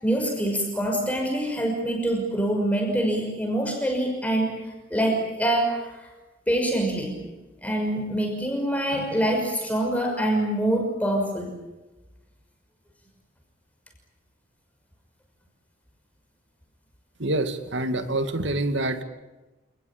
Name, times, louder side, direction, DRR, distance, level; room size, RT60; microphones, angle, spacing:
voice 1, 0.0-4.5 4.9-6.1 6.5-7.1 7.6-11.5, right 1 dB, 5° left, 1 dB, 6.0 m, -25 dB
voice 2, 17.2-19.0, right 1 dB, 70° right, 8 dB, 2.5 m, -26 dB
29.0 x 20.5 x 8.8 m, 1.1 s
head